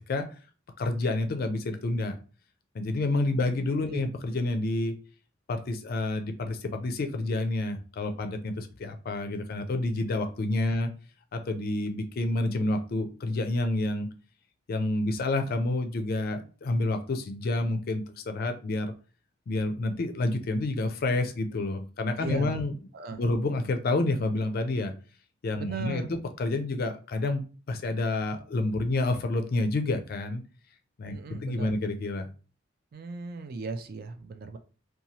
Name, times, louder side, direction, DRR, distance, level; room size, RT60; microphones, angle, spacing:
voice 1, 0.8-2.2 2.7-4.9 5.5-10.9 11.3-14.1 14.7-18.9 19.5-22.7 23.1-24.9 25.4-30.4 31.0-32.3, left 2 dB, 50° left, 6 dB, 0.4 m, -29 dB
voice 2, 22.2-22.6 22.9-23.2 25.6-26.2 31.0-31.7 32.9-34.6, right 3 dB, 50° right, 8 dB, 0.4 m, -37 dB
2.9 x 2.3 x 2.7 m, 0.37 s
head